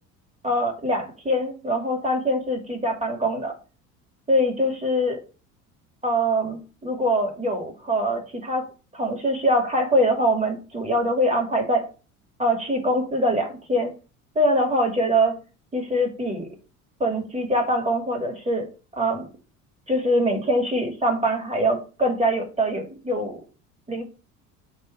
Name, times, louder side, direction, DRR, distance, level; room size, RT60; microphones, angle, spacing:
voice 1, 0.4-3.6 4.3-5.2 6.0-8.7 8.9-11.9 12.4-13.9 14.4-15.3 15.7-16.5 17.0-18.7 19.0-19.3 19.9-23.4 23.9-24.0, equal, 15° right, 3 dB, 2.3 m, -23 dB
8.1 x 3.4 x 4.4 m, 0.34 s
figure-of-eight pair, 60°, 43 cm